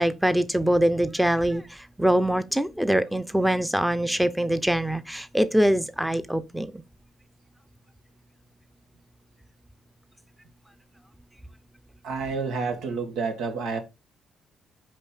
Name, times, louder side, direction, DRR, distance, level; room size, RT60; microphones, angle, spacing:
voice 1, 0.0-6.7, right 1 dB, 5° right, 0.7 m, -23 dB
voice 2, 12.0-13.8, right 4 dB, 85° right, 1.9 m, -29 dB
5.3 x 5.3 x 5.6 m
cardioid pair, 90°, 0 cm